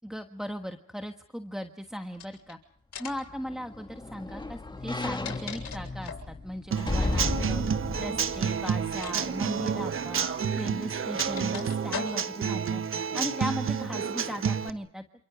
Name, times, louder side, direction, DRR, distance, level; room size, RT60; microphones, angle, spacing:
voice 1, 0.0-2.6 3.0-7.6 8.0-15.0, equal, ahead, 5 dB, 1.4 m, -37 dB
sound 1, 2.1-2.5 2.9-3.3 4.8-6.3 8.1-8.4 8.9-9.2 9.4-9.6 10.5-12.5, left 7 dB, 55° left, 6.8 m, -40 dB
sound 2, 3.1-9.5 9.9-10.0, left 2 dB, 15° left, 1.9 m, -34 dB
Human voice / Acoustic guitar / Drum, 6.7-14.7, right 7 dB, 45° right, 1.2 m, -30 dB
28.5 x 27.5 x 5.0 m, 0.66 s
cardioid pair, 90°, 30 cm